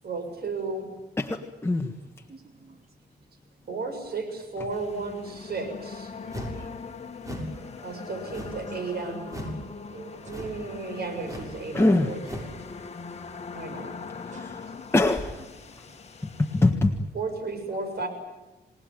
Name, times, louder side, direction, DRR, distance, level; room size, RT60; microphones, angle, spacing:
voice 1, 0.0-0.9 3.7-6.1 7.8-9.3 9.9-12.2 13.5-13.9 17.1-18.1, right 3 dB, 65° right, 6 dB, 7.1 m, -34 dB
voice 2, 1.2-1.9 11.7-12.1 14.4-14.6 14.9-15.4 16.2-17.0, left 2 dB, 15° left, 3 dB, 1.6 m, -23 dB
voice 3, 2.0-2.9 3.6-3.7 5.2-5.7 6.1-7.0 8.8-9.1 10.2-10.3 12.4-12.7 14.0-14.5 15.1-15.2 15.6-16.0, right 3 dB, 40° right, 7 dB, 3.0 m, -55 dB
sound 1, 4.7-16.7, left 5 dB, 40° left, 2.3 m, -41 dB
sound 2, 6.3-6.7 7.2-7.6 8.3-8.7 9.3-9.6 10.3-10.6 11.2-11.6 12.2-12.6, equal, 20° right, 7.4 m, -37 dB
29.0 x 19.0 x 9.4 m, 1.1 s
wide cardioid pair, 110°, 18 cm